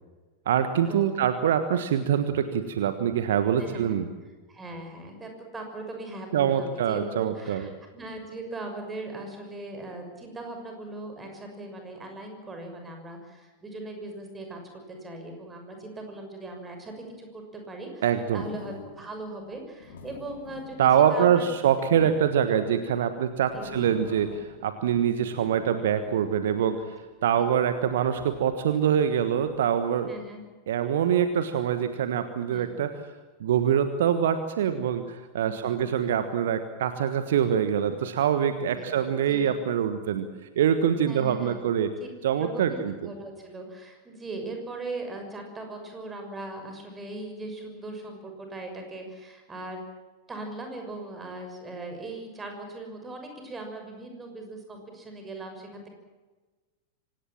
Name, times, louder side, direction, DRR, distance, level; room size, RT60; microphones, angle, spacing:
voice 1, 0.4-4.1 6.3-7.7 18.0-18.4 20.8-26.9 27.2-30.1 30.7-33.0 33.4-40.3 40.5-41.9 42.2-42.9, right 8 dB, 60° right, 10 dB, 1.4 m, -24 dB
voice 2, 3.6-4.0 4.5-14.6 14.9-18.1 18.3-21.5 23.5-23.8 27.4-27.5 30.1-30.4 32.5-32.7 35.4-35.9 38.7-39.0 39.3-39.5 41.1-41.6 42.0-42.1 42.4-49.8 50.3-55.9, right 2 dB, 15° right, 4 dB, 6.5 m, -39 dB
sound 1, 18.3-19.1 19.6-22.8 23.3-24.7 25.0-26.9 27.5-29.6, left 4 dB, 60° left, 3.7 m, -45 dB
25.5 x 18.5 x 7.4 m, 1.3 s
figure-of-eight pair, 90°, 0 cm